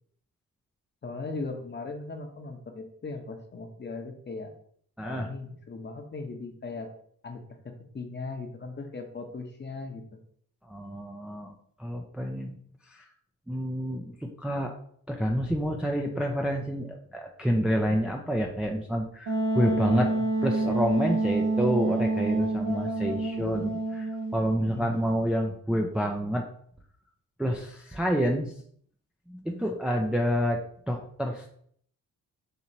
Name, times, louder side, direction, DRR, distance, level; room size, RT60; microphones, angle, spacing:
voice 1, 1.0-4.5 5.0-6.9 7.2-10.0 20.0-20.3 24.6-25.1, left 3 dB, 30° left, 4 dB, 0.8 m, -38 dB
voice 2, 5.0-5.3 10.7-11.5 11.8-12.6 12.9-13.0 13.5-14.7 15.1-20.1 20.4-26.5 27.4-28.5 29.3-30.6 30.9-31.5, equal, 5° right, 1 dB, 0.4 m, -28 dB
Wind instrument woodwind instrument, 19.3-24.8, right 2 dB, 55° right, 0.7 m, -28 dB
4.5 x 2.8 x 2.7 m, 0.62 s
supercardioid pair, 60°, 36 cm